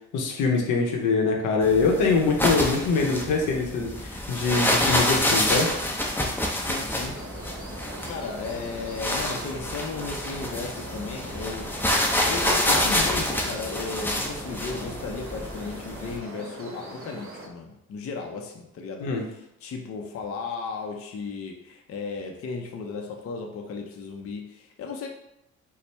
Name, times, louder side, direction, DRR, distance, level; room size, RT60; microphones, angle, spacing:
voice 1, 0.1-5.7 19.0-19.2, left 4 dB, 85° left, 1 dB, 0.8 m, -23 dB
sound 1, 1.6-16.2, left 1 dB, 5° left, 0.6 m, -27 dB
voice 2, 6.5-7.2 8.1-12.0 12.3-25.1, left 4 dB, 50° left, 2 dB, 0.5 m, -35 dB
sound 2, 7.0-17.5, right 2 dB, 50° right, 0.9 m, -41 dB
4.1 x 2.1 x 3.3 m, 0.84 s
cardioid pair, 90°, 30 cm